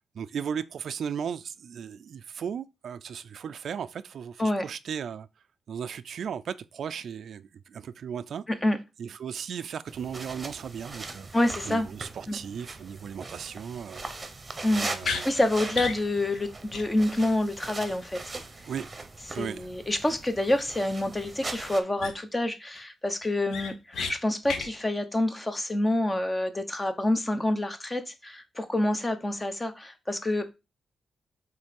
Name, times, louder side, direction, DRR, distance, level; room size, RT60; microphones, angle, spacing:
voice 1, 0.1-5.3 5.7-8.4 9.0-11.3 11.7-14.0 14.7-15.2 18.6-19.1 19.3-19.7, right 7 dB, 65° right, 0.4 m, -36 dB
sound 1, 9.9-21.8, right 3 dB, 25° right, 1.0 m, -40 dB
voice 2, 11.3-11.9 12.3-12.4 14.6-18.3 19.4-30.5, left 1 dB, 15° left, 1.0 m, -27 dB
sound 2, 15.0-15.2 15.7-16.0 16.3-16.4 16.7-16.8 17.1-17.2 21.4-21.5 22.0-22.4 22.8-22.9 23.2-24.1 24.4-24.7, left 5 dB, 80° left, 1.0 m, -32 dB
5.3 x 3.8 x 5.2 m
wide cardioid pair, 120°, 0 cm